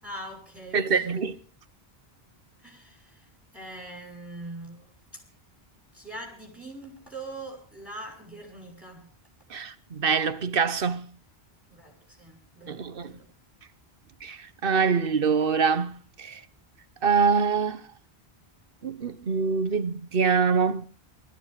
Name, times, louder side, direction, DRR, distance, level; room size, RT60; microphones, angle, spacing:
voice 1, 0.0-1.2 2.6-5.2 5.9-9.1 11.7-13.3, right 2 dB, ahead, 6.4 m, -43 dB
voice 2, 0.7-1.3 9.5-11.1 12.7-13.1 14.2-16.4 17.0-17.8 18.8-20.8, right 5 dB, 60° right, 1.2 m, -25 dB
20.5 x 14.0 x 4.8 m
omnidirectional pair, 1.0 m